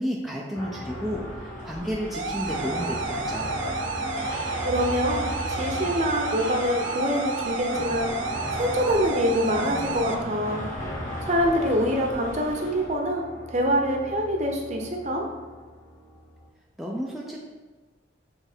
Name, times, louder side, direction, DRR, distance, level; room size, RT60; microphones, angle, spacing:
voice 1, 0.0-3.5 16.8-17.4, equal, ahead, -3 dB, 0.4 m, -32 dB
sound 1, 0.5-16.5, equal, 15° left, 0.8 m, -37 dB
sound 2, 0.9-12.9, equal, 40° left, 1.3 m, -39 dB
sound 3, 2.1-10.1, right 4 dB, 75° right, 0.5 m, -31 dB
voice 2, 4.6-8.1 8.5-10.6 11.2-15.3, equal, 35° right, 1 dB, 0.7 m, -25 dB
6.9 x 3.3 x 4.4 m, 1.3 s
head